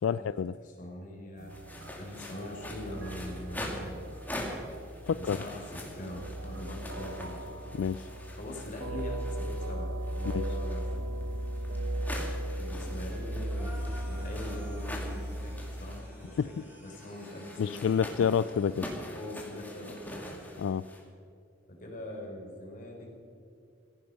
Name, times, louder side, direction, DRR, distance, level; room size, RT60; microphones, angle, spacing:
voice 1, 0.0-0.6 5.1-5.4 7.7-8.1 10.3-10.5 16.4-16.5 17.6-18.9 20.6-20.8, left 7 dB, 90° left, 14 dB, 0.3 m, -28 dB
voice 2, 0.6-3.9 5.1-7.5 8.3-10.9 12.6-16.5 16.8-18.1 19.0-20.4 21.7-23.1, left 1 dB, 45° left, 0 dB, 3.8 m, -42 dB
sound 1, 1.4-16.0, right 1 dB, 80° right, 0.9 m, -37 dB
sound 2, 1.5-9.7 10.0-21.0, left 1 dB, 10° left, 2.4 m, -44 dB
sound 3, 13.4-19.1, left 1 dB, 10° right, 4.6 m, -53 dB
16.5 x 15.5 x 5.5 m, 2.4 s
head